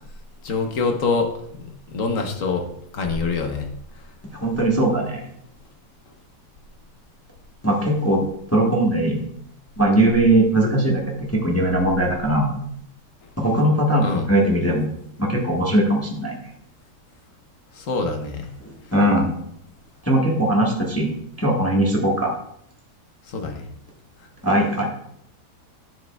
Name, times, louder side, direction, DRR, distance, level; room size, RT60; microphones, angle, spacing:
voice 1, 0.4-2.7 2.9-3.7 14.0-14.3 17.7-18.5 23.3-23.6, left 4 dB, 55° left, 4 dB, 1.2 m, -25 dB
voice 2, 4.3-5.3 7.6-8.2 8.5-9.2 9.8-12.5 13.4-14.9 15.2-16.3 18.6-19.3 20.0-21.1 21.4-22.3 24.4-24.8, right 1 dB, 10° left, -2 dB, 1.0 m, -20 dB
10.5 x 7.5 x 2.2 m, 0.71 s
omnidirectional pair, 1.8 m